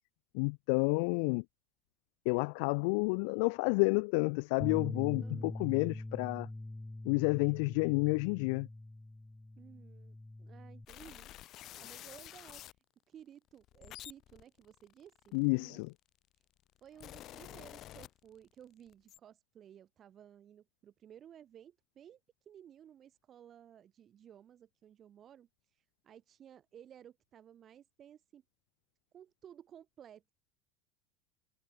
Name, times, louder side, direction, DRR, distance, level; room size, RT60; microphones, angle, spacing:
voice 1, 0.3-1.4 2.3-6.5 7.0-8.7 15.3-15.9, left 34 dB, 65° left, 0.5 m, -30 dB
Bass guitar, 4.6-10.9, left 2 dB, 5° left, 0.3 m, -43 dB
voice 2, 5.2-5.7 9.6-11.3 11.8-12.6 13.1-15.8 16.8-28.4 29.1-30.3, right 9 dB, 30° right, 3.1 m, -56 dB
sound 1, 10.9-12.8 13.5-15.9 16.6-18.6 18.9-19.2, left 14 dB, 40° left, 1.6 m, -50 dB
supercardioid pair, 145°, 0 cm